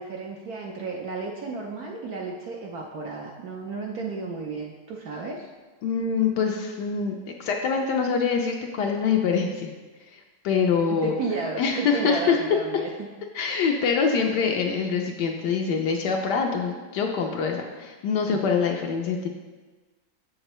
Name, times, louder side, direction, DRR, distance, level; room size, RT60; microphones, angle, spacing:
voice 1, 0.0-5.5 10.9-12.9, right 3 dB, 65° right, -1 dB, 0.9 m, -33 dB
voice 2, 5.8-9.7 10.1-11.1 11.6-12.4 13.3-19.3, left 6 dB, 70° left, 2 dB, 1.1 m, -25 dB
7.3 x 6.5 x 3.0 m, 1.3 s
omnidirectional pair, 2.2 m